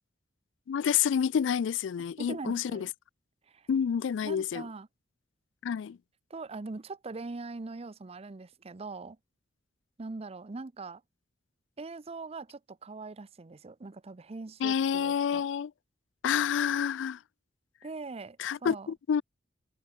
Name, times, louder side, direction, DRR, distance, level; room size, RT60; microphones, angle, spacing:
voice 1, 0.7-2.9 3.7-4.7 5.6-6.0 14.6-15.7 16.2-17.2 18.4-19.2, left 8 dB, 80° left, 0.3 m, -28 dB
voice 2, 2.2-2.9 3.5-3.7 4.2-4.9 6.3-9.2 10.0-11.0 11.8-15.4 17.8-18.9, right 3 dB, 35° right, 0.6 m, -41 dB
head